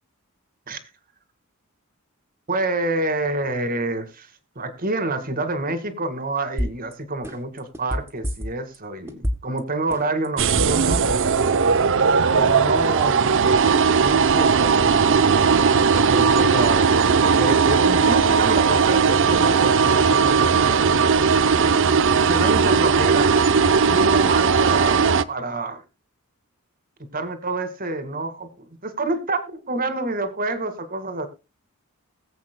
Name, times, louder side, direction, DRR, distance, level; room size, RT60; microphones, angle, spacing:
voice 1, 2.5-4.3 4.6-11.0 12.3-13.3 14.0-21.4 22.2-23.5 23.9-25.0 25.3-25.8 27.1-31.3, right 2 dB, 40° right, 2.0 m, -28 dB
sound 1, 6.6-6.9 7.2-8.8 9.1-9.6 9.9-11.4 11.7-11.8, equal, 10° right, 2.0 m, -27 dB
sound 2, 10.4-25.2, right 5 dB, 60° right, 0.7 m, -18 dB
21.0 x 8.2 x 2.2 m
head